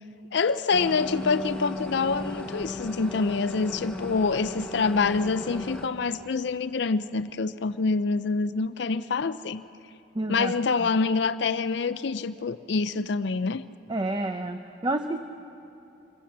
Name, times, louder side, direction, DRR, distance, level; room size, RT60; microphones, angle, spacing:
voice 1, 0.3-9.6 10.3-13.6, left 4 dB, 60° left, 13 dB, 0.5 m, -26 dB
sound 1, 0.7-5.9, left 1 dB, 5° left, 1.5 m, -36 dB
voice 2, 10.1-10.5 10.8-10.9 13.9-15.2, right 2 dB, 20° right, 7 dB, 0.6 m, -29 dB
26.5 x 21.5 x 7.3 m, 2.8 s
head